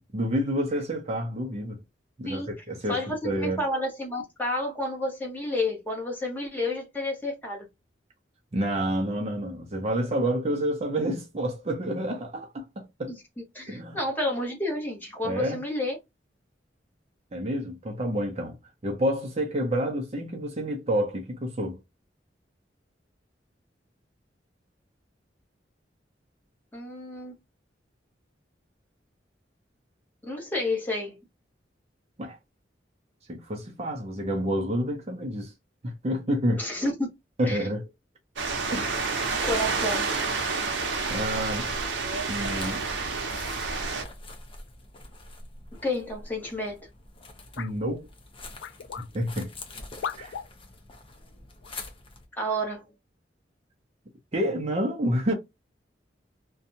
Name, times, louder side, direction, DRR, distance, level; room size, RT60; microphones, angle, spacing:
voice 1, 0.0-1.8 2.2-3.6 8.5-13.2 13.7-14.0 15.2-15.6 17.3-18.6 18.8-21.8 32.2-32.4 33.3-35.5 35.8-36.6 37.4-37.8 38.7-39.1 41.1-41.7 42.3-42.9 47.6-48.1 49.1-49.5 50.1-50.3 54.3-55.3, equal, 35° right, 0.6 m, -29 dB
voice 2, 2.9-7.7 13.5-16.0 26.7-27.3 30.2-31.2 36.6-37.1 37.4-37.6 39.4-40.1 45.8-46.9 52.4-52.9, left 1 dB, 10° left, 1.1 m, -30 dB
sound 1, 38.4-44.0, right 4 dB, 80° right, 0.7 m, -29 dB
sound 2, 40.9-52.3, left 2 dB, 30° left, 0.6 m, -45 dB
sound 3, 47.6-47.8 48.6-49.1 50.0-50.5 51.6-51.7 52.5-52.7, left 7 dB, 85° left, 0.3 m, -36 dB
2.6 x 2.2 x 2.7 m
head